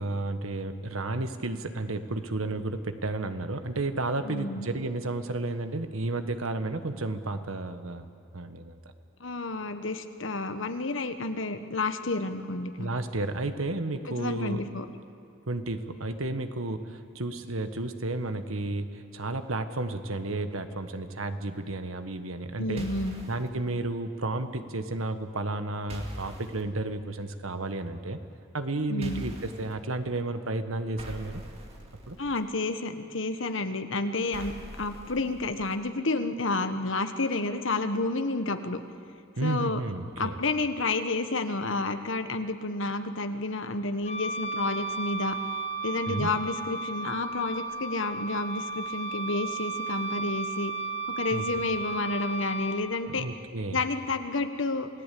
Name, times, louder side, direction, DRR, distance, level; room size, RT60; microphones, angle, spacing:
voice 1, 0.0-8.1 8.3-8.8 12.8-14.6 15.5-22.9 23.2-28.2 28.5-31.4 32.1-32.2 39.4-40.4 46.1-46.3 51.3-51.4 53.1-53.8, right 2 dB, 80° right, 9 dB, 1.5 m, -32 dB
voice 2, 4.2-4.7 9.2-12.9 14.1-14.9 22.6-23.2 28.9-29.2 32.2-38.8 39.4-39.8 40.2-45.4 45.8-50.7 51.2-53.2 53.7-54.9, left 2 dB, 65° left, 8 dB, 1.4 m, -30 dB
sound 1, 22.8-23.5 25.9-26.6 29.0-29.7 31.0-32.4 34.3-35.7, equal, 30° right, 2.4 m, -42 dB
Wind instrument woodwind instrument, 44.0-52.8, right 3 dB, 35° left, 1.2 m, -34 dB
28.5 x 17.5 x 8.6 m, 2.6 s
head